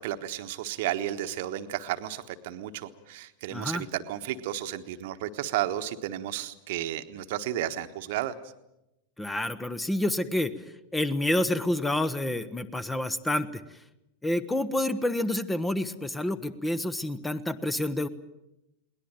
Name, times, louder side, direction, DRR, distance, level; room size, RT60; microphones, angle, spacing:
voice 1, 0.0-8.3, right 12 dB, 50° right, 10 dB, 1.3 m, -33 dB
voice 2, 3.5-3.9 9.2-10.5 10.9-13.6 14.2-18.1, left 1 dB, 10° left, 14 dB, 1.1 m, -28 dB
22.0 x 19.0 x 9.0 m, 0.91 s
figure-of-eight pair, 90°, 0 cm